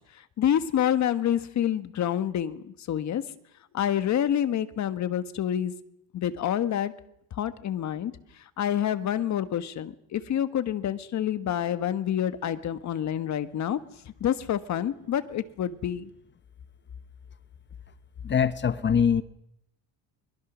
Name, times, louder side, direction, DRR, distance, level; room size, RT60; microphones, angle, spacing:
voice 1, 0.4-3.2 3.7-5.7 6.1-6.9 7.3-8.1 8.6-13.8 14.2-16.1, left 10 dB, 45° left, 11 dB, 1.4 m, -27 dB
voice 2, 18.2-19.2, left 7 dB, 30° left, 13 dB, 0.9 m, -23 dB
23.0 x 22.0 x 6.2 m, 0.79 s
cardioid pair, 135°, 40 cm